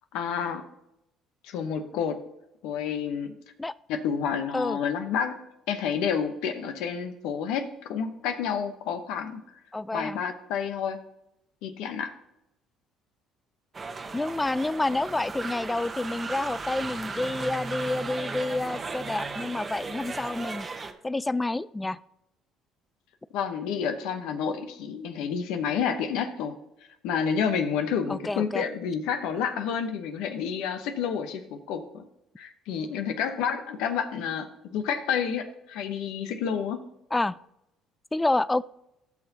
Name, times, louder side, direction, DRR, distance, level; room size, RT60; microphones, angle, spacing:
voice 1, 0.1-0.6 1.4-2.2 2.6-3.3 3.9-5.4 5.7-9.4 9.9-11.0 11.6-12.1 23.3-26.5 27.0-32.0 32.4-36.8, left 7 dB, 80° left, 8 dB, 0.9 m, -29 dB
voice 2, 9.7-10.2 14.1-20.7 21.0-22.0 28.1-28.6 37.1-37.4 38.1-38.6, left 2 dB, 15° left, 18 dB, 0.4 m, -28 dB
sound 1, 13.7-20.9, right 4 dB, 30° right, 1.0 m, -36 dB
15.0 x 6.1 x 2.8 m, 0.84 s
supercardioid pair, 80°, 0 cm